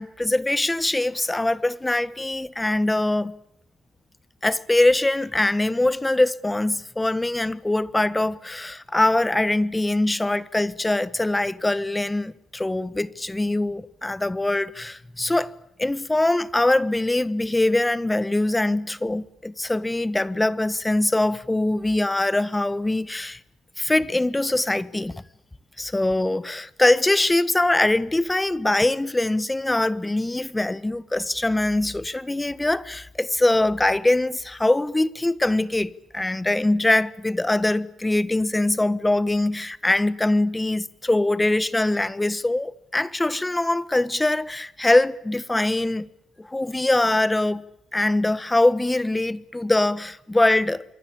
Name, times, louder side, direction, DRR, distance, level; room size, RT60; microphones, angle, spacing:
voice 1, 0.0-3.4 4.4-15.5 15.8-23.4 23.8-25.2 25.8-46.1 46.4-47.6 47.9-50.8, left 2 dB, 15° left, 1.4 m, -23 dB
26.0 x 23.5 x 8.7 m
cardioid pair, 90°, 0 cm